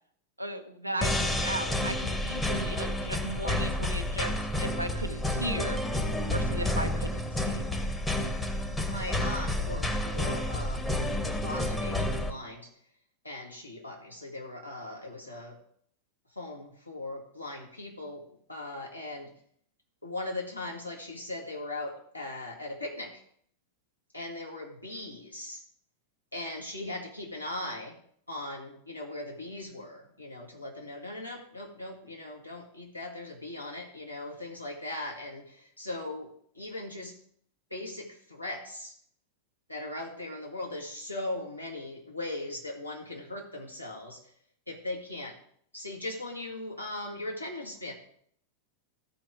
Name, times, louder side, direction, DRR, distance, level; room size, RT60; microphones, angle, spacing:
voice 1, 0.4-5.8 6.3-7.6, right 1 dB, 85° right, 7 dB, 0.8 m, -36 dB
sound 1, 1.0-12.3, left 1 dB, 10° left, 1.0 m, -30 dB
voice 2, 8.9-12.7 13.2-15.6 16.3-19.3 20.0-23.2 24.1-25.6 26.3-28.0 28.3-37.2 37.7-38.9 39.7-44.3 44.7-45.4 45.7-47.9, left 2 dB, 85° left, -2 dB, 1.9 m, -39 dB
14.0 x 4.7 x 5.0 m, 0.64 s
figure-of-eight pair, 90°, 0 cm